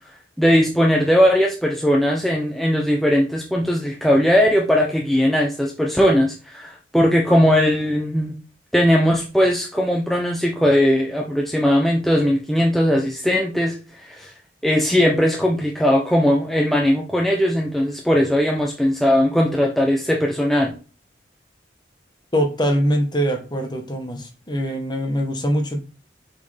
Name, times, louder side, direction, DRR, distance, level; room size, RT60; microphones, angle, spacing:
voice 1, 0.4-8.3 8.7-14.3 14.6-20.7, equal, ahead, -1 dB, 0.6 m, -19 dB
voice 2, 22.3-25.8, equal, 25° left, 4 dB, 1.0 m, -23 dB
6.7 x 4.2 x 3.4 m, 0.35 s
head